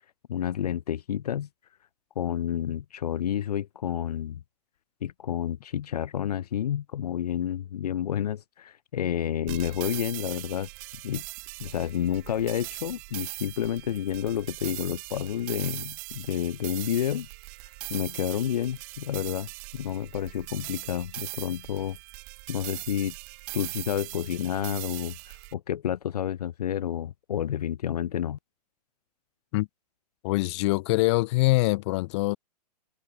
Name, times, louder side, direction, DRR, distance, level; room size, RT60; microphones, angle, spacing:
voice 1, 0.3-1.5 2.2-4.4 5.0-10.7 11.0-11.2 11.6-17.3 17.9-22.0 22.5-23.1 23.5-28.4, left 10 dB, 70° left, 1.0 m, -30 dB
sound 1, 9.5-25.5, right 40 dB or more, 40° right, 1.5 m, -40 dB
voice 2, 30.2-32.4, left 21 dB, 45° left, 1.3 m, -24 dB
hypercardioid pair, 125°, 21 cm